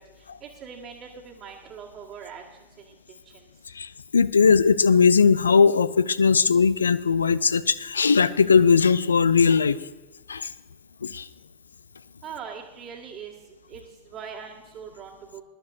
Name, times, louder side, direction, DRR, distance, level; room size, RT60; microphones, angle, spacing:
voice 1, 0.0-3.5 12.2-13.3 13.7-15.4, right 7 dB, 35° right, -5 dB, 1.8 m, -42 dB
voice 2, 3.7-9.8 10.3-10.5 11.0-11.3, left 5 dB, 75° left, 16 dB, 0.4 m, -19 dB
20.0 x 11.5 x 2.7 m, 1.2 s
figure-of-eight pair, 90°, 0 cm